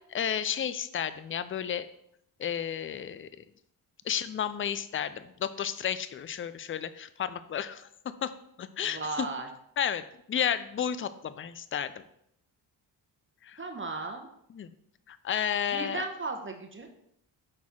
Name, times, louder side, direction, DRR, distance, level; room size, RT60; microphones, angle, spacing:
voice 1, 0.0-1.9 2.4-3.3 4.1-8.3 8.6-9.3 9.8-10.0 10.3-12.0 13.4-13.6 14.5-14.7 15.1-16.0, left 8 dB, 30° left, 14 dB, 0.4 m, -32 dB
voice 2, 8.8-9.5 13.6-14.3 15.7-16.9, right 3 dB, 25° right, 3 dB, 1.1 m, -35 dB
5.9 x 4.3 x 3.7 m, 0.74 s
cardioid pair, 50°, 48 cm